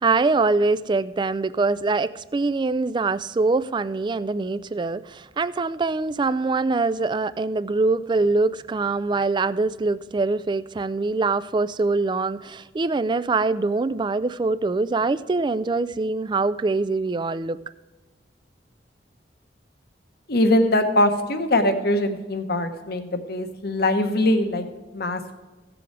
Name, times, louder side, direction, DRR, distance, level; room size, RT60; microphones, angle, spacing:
voice 1, 0.0-17.6, right 3 dB, 25° right, 0.3 m, -23 dB
voice 2, 20.3-24.7 24.9-25.4, left 1 dB, 60° left, 1.1 m, -22 dB
16.0 x 7.1 x 4.7 m
head